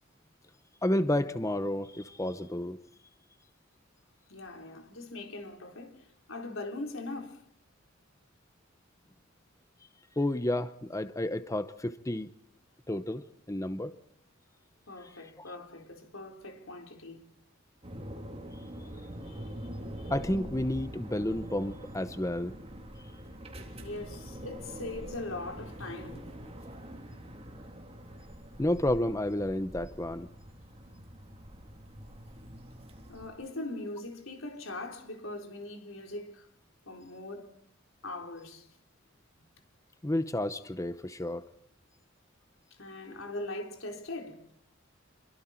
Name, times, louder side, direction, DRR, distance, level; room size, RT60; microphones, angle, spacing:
voice 1, 0.8-2.8 10.2-12.3 12.9-13.9 15.4-15.5 20.1-22.5 28.6-30.3 40.0-41.4, left 1 dB, 15° left, 0.8 m, -31 dB
voice 2, 4.3-7.4 14.9-17.3 19.2-19.5 20.0-20.1 23.8-26.3 33.1-36.5 36.9-37.5 38.0-38.7 42.7-44.5, left 2 dB, 75° left, 4.2 m, -41 dB
sound 1, 17.8-33.3, equal, 30° right, 3.6 m, -44 dB
28.0 x 23.5 x 4.5 m
head